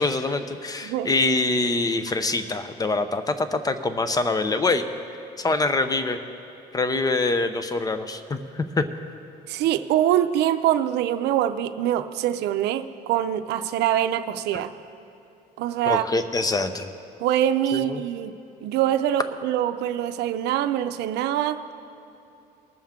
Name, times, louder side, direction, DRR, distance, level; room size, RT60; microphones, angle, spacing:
voice 1, 0.0-4.9 5.4-6.2 6.7-8.8 15.9-16.9 17.7-18.0, left 3 dB, 20° left, 10 dB, 0.7 m, -24 dB
voice 2, 9.5-14.7 15.6-16.1 17.2-18.3 18.6-21.6, right 11 dB, 80° right, 10 dB, 0.5 m, -24 dB
20.5 x 7.2 x 3.6 m, 2.7 s
cardioid pair, 110°, 17 cm